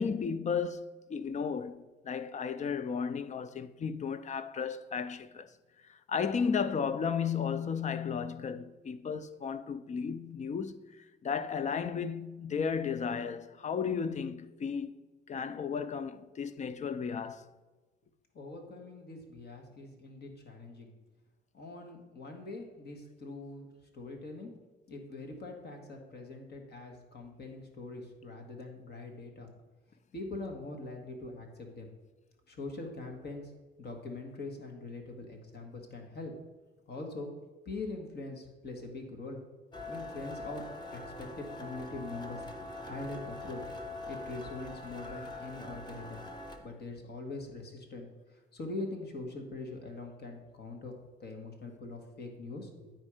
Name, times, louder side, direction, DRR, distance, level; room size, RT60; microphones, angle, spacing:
voice 1, 0.0-5.5 5.9-10.8 11.2-14.9 15.3-17.4 45.0-45.4, left 6 dB, 35° left, 0.5 m, -34 dB
voice 2, 18.3-20.9 21.5-24.5 24.9-29.5 30.1-31.9 32.5-33.5 33.8-36.3 36.9-37.3 37.6-39.4 39.9-40.6 40.9-42.4 42.8-43.6 44.1-46.2 46.6-52.9, left 2 dB, 55° left, 1.7 m, -43 dB
sound 1, 39.7-46.6, left 2 dB, 20° left, 1.1 m, -43 dB
9.5 x 4.5 x 4.9 m
cardioid pair, 90°, 20 cm